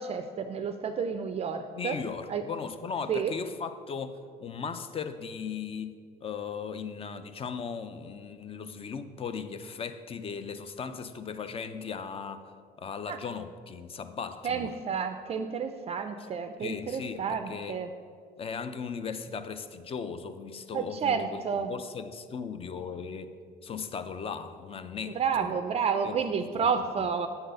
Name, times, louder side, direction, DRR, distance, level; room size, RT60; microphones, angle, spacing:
voice 1, 0.0-2.0 2.3-2.4 3.1-3.3 13.1-13.2 14.4-17.9 20.7-21.7 25.1-27.3, right 6 dB, 40° right, 8 dB, 0.4 m, -30 dB
voice 2, 1.7-12.5 12.8-14.7 16.6-17.8 18.4-25.5 26.0-26.2 26.5-27.1, left 6 dB, 35° left, 11 dB, 0.5 m, -37 dB
8.0 x 3.9 x 6.6 m, 2.1 s
cardioid pair, 110°, 17 cm